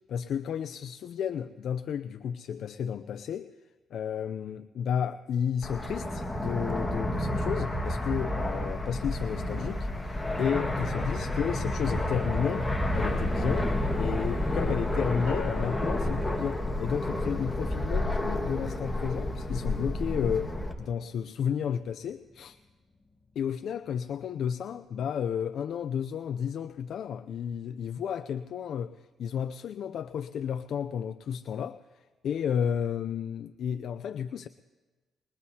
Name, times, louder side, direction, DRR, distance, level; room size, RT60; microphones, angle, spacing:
voice 1, 0.1-3.5 3.9-22.6 23.4-34.5, left 8 dB, 65° left, 10 dB, 0.4 m, -32 dB
Fixed-wing aircraft airplane, 5.6-20.7, left 1 dB, 10° left, 1.7 m, -30 dB
sound 1, 8.4-24.3 24.7-24.8 25.1-25.3, left 3 dB, 30° left, 3.6 m, -49 dB
Bell, 15.3-16.9, left 9 dB, 85° left, 0.9 m, -44 dB
21.5 x 21.5 x 2.8 m, 1.3 s
cardioid pair, 90°, 0 cm